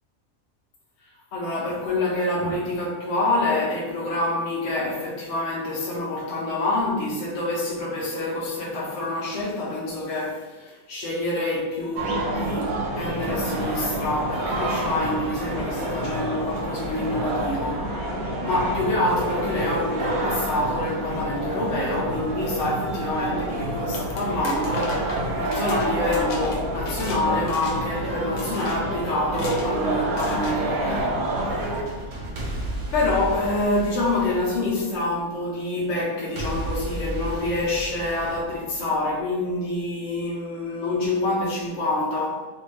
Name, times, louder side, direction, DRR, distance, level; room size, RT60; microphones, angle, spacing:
voice 1, 1.3-17.9 18.4-31.2 32.9-42.5, left 2 dB, 60° left, -5 dB, 0.9 m, -26 dB
sound 1, 12.0-31.8, right 1 dB, 75° right, 1.3 m, -28 dB
sound 2, 23.7-27.2 27.5-28.0 28.4-28.8 29.3-29.7 30.2-30.6, left 3 dB, 85° left, 1.1 m, -38 dB
sound 3, 31.1-35.2 36.4-39.2, equal, 50° right, 0.5 m, -34 dB
3.4 x 2.7 x 3.1 m, 1.2 s
omnidirectional pair, 1.5 m